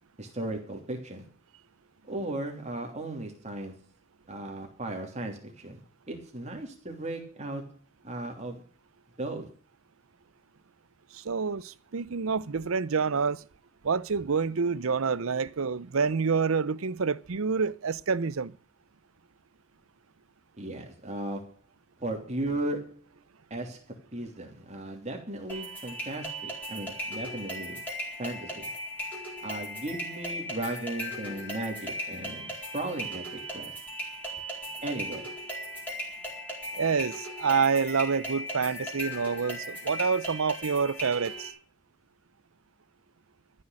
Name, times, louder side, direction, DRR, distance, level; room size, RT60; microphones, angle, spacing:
voice 1, 0.2-1.2 2.0-3.8 4.3-8.6 9.2-9.5 20.6-21.6 22.0-23.1 23.5-23.9 24.1-27.8 28.2-28.7 29.4-33.7 34.8-35.4, right 1 dB, 30° right, 3.0 m, -36 dB
voice 2, 11.1-13.4 13.8-18.5 36.7-41.5, right 5 dB, 70° right, 0.6 m, -27 dB
sound 1, 25.5-41.5, equal, 10° left, 4.4 m, -37 dB
13.5 x 6.6 x 8.7 m
head